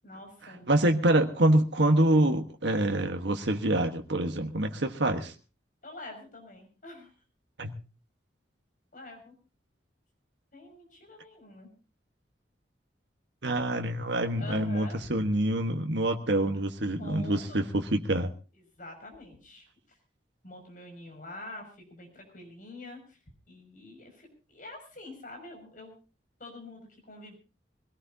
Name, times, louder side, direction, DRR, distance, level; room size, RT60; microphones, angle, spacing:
voice 1, 0.0-1.0 5.8-7.1 8.9-9.3 10.5-11.7 13.5-13.9 14.4-15.0 16.9-17.7 18.5-20.0 20.4-23.2 23.5-25.9 26.4-27.4, left 2 dB, 45° left, 2 dB, 6.3 m, -46 dB
voice 2, 0.7-5.3 7.6-7.7 13.4-18.3, right 1 dB, 80° right, 4 dB, 1.3 m, -26 dB
24.0 x 17.5 x 2.8 m, 0.32 s
head